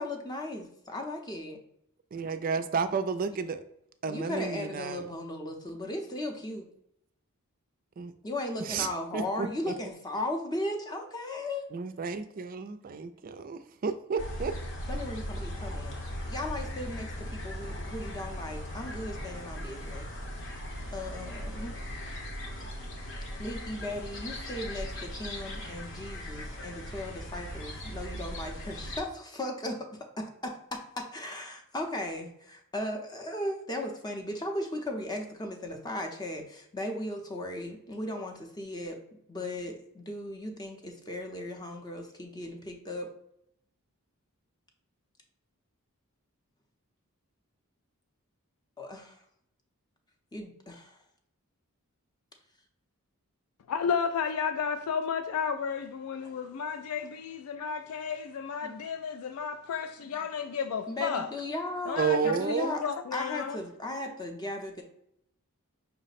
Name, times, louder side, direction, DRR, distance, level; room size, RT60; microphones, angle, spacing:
voice 1, 0.0-1.6 4.1-6.7 8.2-11.6 14.9-16.0 16.3-20.0 20.9-21.8 23.4-29.9 30.2-39.0 39.3-43.1 48.8-49.2 50.3-51.0 58.6-58.9 60.9-62.0 62.2-62.8 63.1-64.8, left 1 dB, 20° left, 0.6 m, -36 dB
voice 2, 2.1-3.6 4.0-5.1 8.0-8.1 8.6-8.9 9.1-9.7 11.7-14.5 62.0-62.8, right 5 dB, 40° right, 0.3 m, -31 dB
sound 1, 14.2-29.0, equal, 55° left, 0.9 m, -38 dB
voice 3, 53.7-61.3 61.9-62.4 62.8-63.6, left 6 dB, 80° left, 0.3 m, -32 dB
5.6 x 2.1 x 4.0 m
head